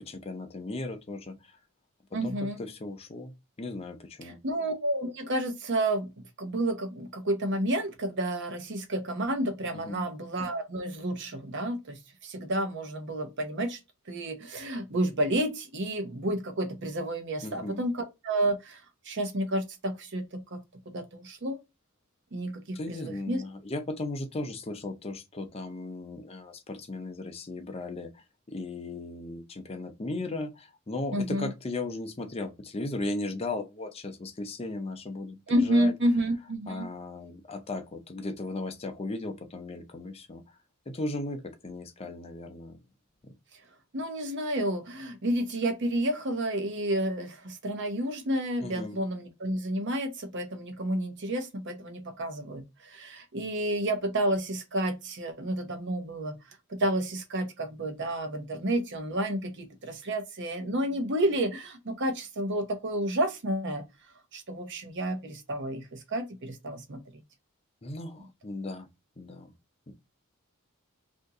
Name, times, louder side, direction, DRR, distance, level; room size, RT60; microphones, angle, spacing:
voice 1, 0.0-1.4 2.1-3.3 3.6-4.4 9.7-10.1 17.4-17.8 22.7-35.9 36.7-40.4 40.9-42.8 48.6-49.0 67.8-68.9 69.2-69.5 69.9-70.0, left 2 dB, 25° left, 0.6 m, -36 dB
voice 2, 2.1-2.6 4.2-6.1 6.4-13.8 14.1-21.6 22.3-23.4 31.1-31.5 35.5-36.9 43.9-56.3 56.7-63.8 64.3-67.2, right 1 dB, 55° right, 0.8 m, -30 dB
2.8 x 2.6 x 3.5 m
head